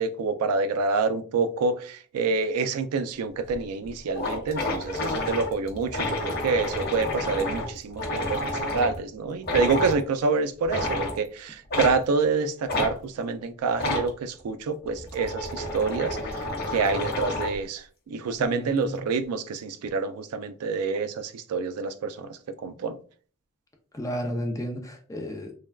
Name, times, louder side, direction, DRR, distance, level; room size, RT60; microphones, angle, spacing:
voice 1, 0.0-23.0, right 4 dB, 85° right, 0.3 m, -27 dB
sound 1, 3.5-3.6 3.9-4.0 4.1-9.0 9.4-10.0 10.6-11.2 11.7-12.0 12.7-12.9 13.7-14.1 14.9-17.6, left 1 dB, 45° left, 0.7 m, -30 dB
voice 2, 18.4-19.0 23.9-25.5, equal, 15° left, 0.4 m, -33 dB
3.2 x 2.2 x 2.2 m
head